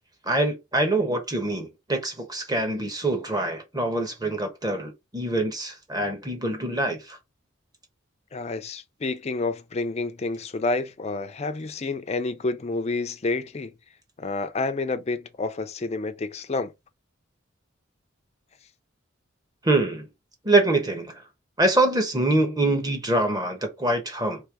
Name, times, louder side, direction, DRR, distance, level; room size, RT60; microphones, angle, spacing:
voice 1, 0.2-7.2 19.6-20.1 20.4-21.2 21.6-24.4, right 2 dB, 20° right, 1.1 m, -24 dB
voice 2, 8.3-13.7 14.2-16.7, left 3 dB, 35° left, 0.5 m, -29 dB
3.4 x 3.3 x 4.7 m
head